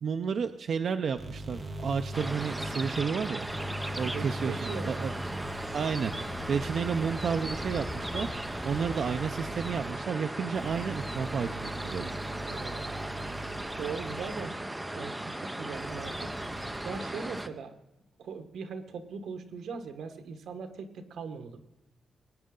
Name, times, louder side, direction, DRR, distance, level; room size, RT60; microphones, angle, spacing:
voice 1, 0.0-3.5 4.0-5.1 5.7-8.3 8.6-12.1, right 6 dB, 50° right, 8 dB, 0.5 m, -31 dB
sound 1, 1.2-14.6 15.8-17.3, right 1 dB, 30° right, 1.6 m, -40 dB
sound 2, 2.1-17.5, right 1 dB, 10° right, 0.6 m, -37 dB
voice 2, 4.1-5.1 12.4-12.9 13.8-16.3 16.8-17.8 18.2-21.6, right 5 dB, 85° right, 8 dB, 1.2 m, -40 dB
20.0 x 9.6 x 3.8 m, 0.99 s
wide cardioid pair, 180°, 0 cm